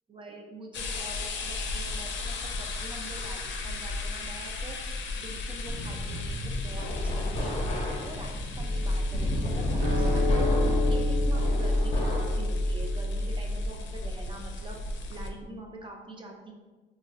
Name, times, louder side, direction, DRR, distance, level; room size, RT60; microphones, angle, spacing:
voice 1, 0.1-4.8 5.2-7.7 8.1-14.8 15.1-16.5, right 2 dB, 25° right, 0 dB, 0.6 m, -45 dB
sound 1, 0.7-15.3, left 2 dB, 70° left, 0.5 m, -35 dB
sound 2, 5.7-12.4, left 1 dB, 35° left, 0.7 m, -33 dB
sound 3, 8.6-13.7, left 1 dB, 55° right, 1.1 m, -27 dB
3.5 x 2.1 x 2.6 m, 1.3 s
cardioid pair, 90°, 20 cm